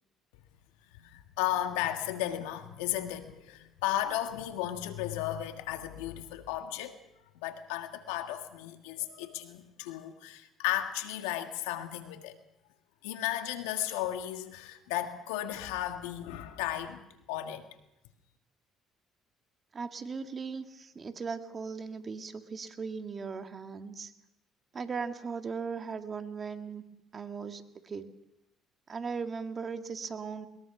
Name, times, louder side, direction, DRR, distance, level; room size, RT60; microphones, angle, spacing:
voice 1, 1.0-7.0 7.3-12.3 13.0-17.0 17.3-17.6, left 12 dB, 85° left, 7 dB, 1.7 m, -34 dB
voice 2, 19.7-24.1 24.7-26.8 27.1-28.1 28.9-30.5, right 5 dB, 40° right, 7 dB, 1.9 m, -38 dB
21.5 x 21.0 x 6.0 m, 0.90 s
supercardioid pair, 65°, 0 cm